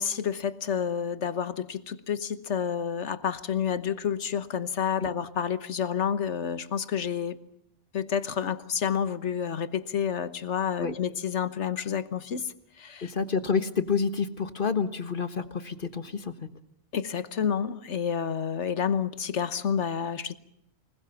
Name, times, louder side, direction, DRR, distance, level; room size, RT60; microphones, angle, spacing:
voice 1, 0.0-7.4 7.9-13.1 16.9-20.3, left 7 dB, 80° left, 13 dB, 1.4 m, -29 dB
voice 2, 13.0-16.3, left 5 dB, 50° left, 11 dB, 1.5 m, -28 dB
25.5 x 20.0 x 7.0 m, 0.73 s
omnidirectional pair, 1.2 m